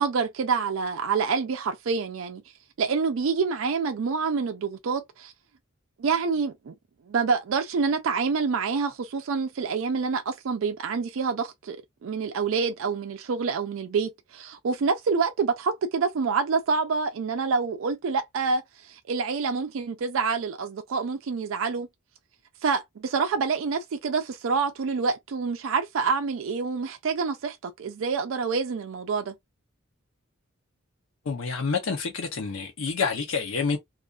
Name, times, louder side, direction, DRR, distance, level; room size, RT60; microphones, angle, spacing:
voice 1, 0.0-2.4 2.8-5.3 6.0-6.7 7.1-21.9 22.6-29.3, right 5 dB, 70° right, 0.4 m, -27 dB
voice 2, 31.3-33.8, left 5 dB, 70° left, 0.6 m, -28 dB
2.4 x 2.3 x 2.4 m
head